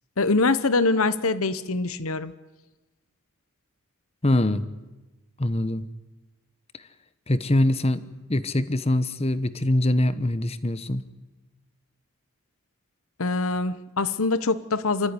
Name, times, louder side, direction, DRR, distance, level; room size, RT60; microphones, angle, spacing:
voice 1, 0.2-2.3 13.2-15.1, left 3 dB, 70° left, 14 dB, 1.1 m, -24 dB
voice 2, 4.2-4.7 5.4-5.9 7.3-11.0, left 1 dB, 30° left, 13 dB, 1.0 m, -23 dB
26.5 x 14.0 x 9.8 m, 1.1 s
head